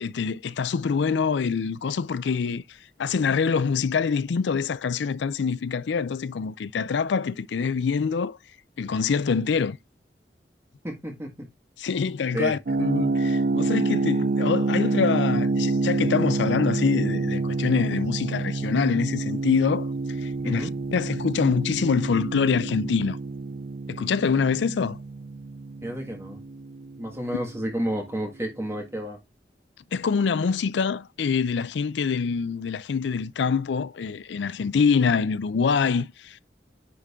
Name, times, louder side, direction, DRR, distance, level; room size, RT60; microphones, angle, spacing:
voice 1, 0.0-2.6 3.0-8.4 8.8-9.8 11.8-19.9 20.2-23.2 23.9-25.0 29.9-36.4, left 5 dB, 80° left, 0.4 m, -25 dB
voice 2, 10.8-11.5 12.3-12.6 20.4-20.7 25.8-26.4 27.0-29.2, right 1 dB, 15° right, 1.7 m, -31 dB
sound 1, 12.7-27.4, right 3 dB, 50° right, 0.4 m, -27 dB
10.0 x 3.8 x 3.6 m
head